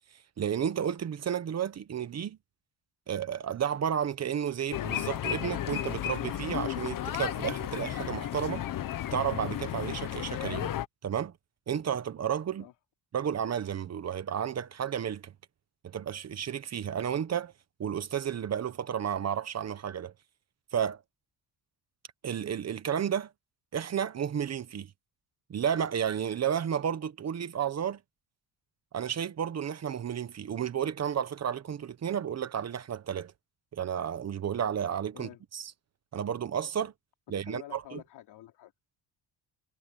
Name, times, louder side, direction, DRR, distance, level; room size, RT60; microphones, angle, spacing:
voice 1, 0.4-2.4 3.1-8.7 9.1-10.7 11.0-11.3 11.7-12.7 13.1-15.3 15.8-17.5 17.8-20.1 20.7-21.0 22.2-23.3 23.7-24.9 25.5-28.0 28.9-33.3 33.7-35.7 36.1-36.9 37.3-38.0, right 8 dB, 40° right, 1.1 m, -32 dB
sound 1, 4.7-10.9, left 11 dB, 55° left, 1.2 m, -33 dB
voice 2, 37.4-38.7, left 13 dB, 75° left, 3.2 m, -48 dB
cardioid pair, 135°, 41 cm